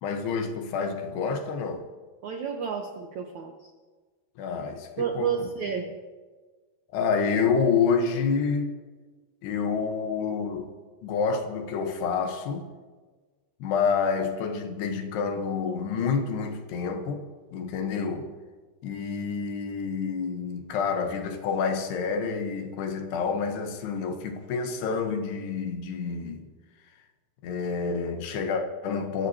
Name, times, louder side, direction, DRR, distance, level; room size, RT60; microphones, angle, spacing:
voice 1, 0.0-1.8 4.4-5.4 6.9-8.7 9.4-10.7 11.0-12.7 13.6-17.2 17.5-18.3 18.8-26.5 27.4-29.3, left 5 dB, 75° left, 3.1 m, -28 dB
voice 2, 2.2-3.5 5.0-5.9, right 7 dB, 90° right, 1.6 m, -30 dB
26.5 x 14.0 x 2.9 m
omnidirectional pair, 4.9 m